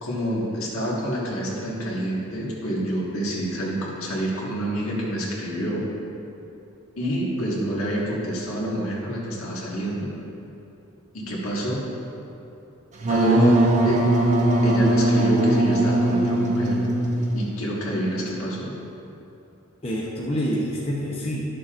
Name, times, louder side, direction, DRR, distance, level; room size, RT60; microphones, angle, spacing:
voice 1, 0.0-5.9 7.0-10.1 11.1-11.9 13.1-13.5 13.8-14.1 14.6-16.9 17.3-18.7, equal, 75° left, -4 dB, 1.6 m, -27 dB
Wind instrument woodwind instrument, 13.0-17.5, right 1 dB, 35° right, 0.7 m, -20 dB
voice 2, 13.1-13.6 13.8-14.1 19.8-21.4, equal, 25° left, -5 dB, 0.7 m, -26 dB
12.0 x 6.7 x 2.5 m, 2.9 s
head